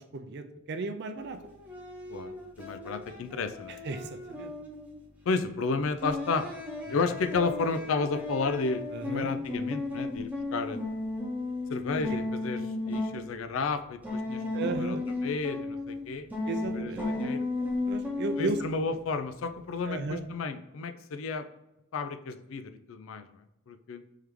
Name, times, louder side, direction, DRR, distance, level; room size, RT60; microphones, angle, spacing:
voice 1, 0.0-1.4 3.7-4.5 6.9-7.0 8.9-9.3 14.5-15.0 16.5-17.2 17.9-18.6 19.8-20.2, right 3 dB, 55° right, 8 dB, 0.5 m, -35 dB
sound 1, 1.2-5.0 6.0-13.2 14.0-16.1 16.3-18.8, left 2 dB, 10° right, 0.7 m, -35 dB
voice 2, 2.1-3.8 5.3-6.5 6.9-10.8 11.7-12.6 12.9-15.0 15.2-16.3 16.7-17.5 18.4-21.5 21.9-23.3 23.7-24.0, left 4 dB, 70° left, 10 dB, 0.4 m, -32 dB
3.7 x 3.4 x 3.1 m, 0.91 s
head